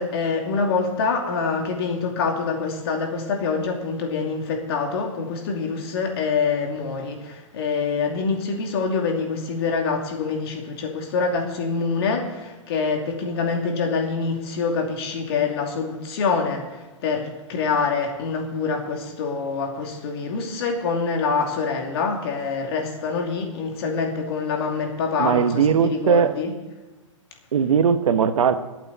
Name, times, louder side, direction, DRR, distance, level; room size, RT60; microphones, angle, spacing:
voice 1, 0.0-25.5 25.8-26.5, left 5 dB, 50° left, 2 dB, 2.7 m, -25 dB
voice 2, 25.2-26.3 27.5-28.5, right 7 dB, 80° right, 9 dB, 1.3 m, -19 dB
25.0 x 8.6 x 4.2 m, 1.2 s
hypercardioid pair, 160°, 17 cm